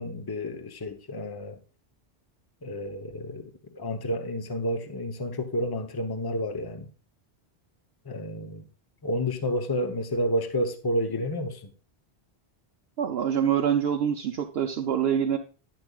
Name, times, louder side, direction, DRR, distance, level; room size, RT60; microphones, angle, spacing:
voice 1, 0.0-1.6 2.6-6.9 8.1-8.6 9.0-11.6, equal, 25° left, 0.9 m, -30 dB
voice 2, 13.0-15.4, right 8 dB, 70° right, 0.9 m, -25 dB
10.5 x 10.0 x 2.4 m
omnidirectional pair, 1.1 m